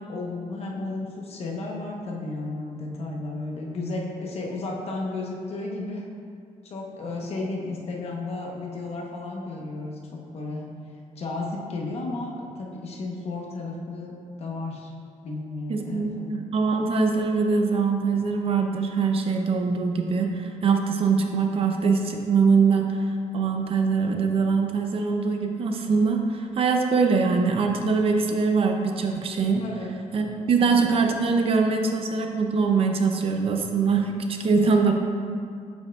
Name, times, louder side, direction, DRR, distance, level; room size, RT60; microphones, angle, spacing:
voice 1, 0.0-6.1 6.6-10.7 11.1-14.9 15.2-16.3 29.6-29.9 30.5-30.8, left 2 dB, 50° left, -1 dB, 0.9 m, -33 dB
voice 2, 15.7-29.6 30.1-34.9, right 4 dB, 45° right, 3 dB, 0.5 m, -23 dB
7.9 x 7.1 x 2.3 m, 2.2 s
wide cardioid pair, 175°, 13 cm